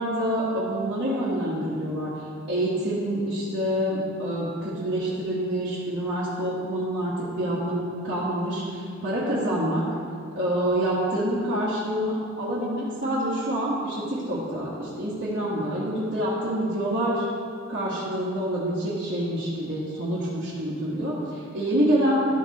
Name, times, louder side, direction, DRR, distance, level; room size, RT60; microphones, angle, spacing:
voice 1, 0.0-2.1 2.5-9.8 10.3-17.2 17.7-22.3, right 1 dB, 55° right, -9 dB, 1.5 m, -27 dB
12.5 x 4.5 x 4.2 m, 2.2 s
head